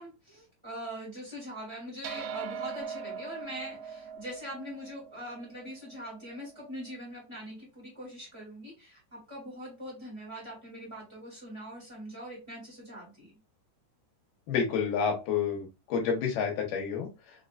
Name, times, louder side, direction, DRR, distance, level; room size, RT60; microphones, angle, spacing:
voice 1, 0.0-13.3, equal, 35° right, -6 dB, 0.5 m, -42 dB
sound 1, 2.0-6.7, right 7 dB, 85° right, 2.3 m, -41 dB
voice 2, 14.5-17.1, left 6 dB, 75° left, 1 dB, 2.7 m, -29 dB
5.8 x 2.2 x 2.5 m, 0.28 s
omnidirectional pair, 4.0 m